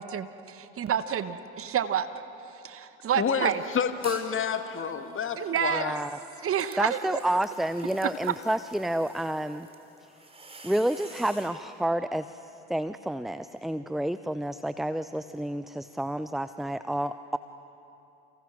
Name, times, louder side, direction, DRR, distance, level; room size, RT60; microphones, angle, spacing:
voice 1, 0.0-2.1 2.6-3.6 5.4-5.8 6.4-7.2, right 9 dB, 40° right, 12 dB, 1.3 m, -29 dB
voice 2, 3.1-5.9, left 6 dB, 35° left, 7 dB, 2.2 m, -29 dB
sound 1, 3.9-4.4 4.8-11.6, right 2 dB, 15° right, 3.8 m, -50 dB
voice 3, 5.7-6.1 6.8-9.7 10.6-17.4, right 1 dB, ahead, 13 dB, 0.6 m, -30 dB
29.5 x 29.0 x 6.2 m, 2.9 s
hypercardioid pair, 60°, 35 cm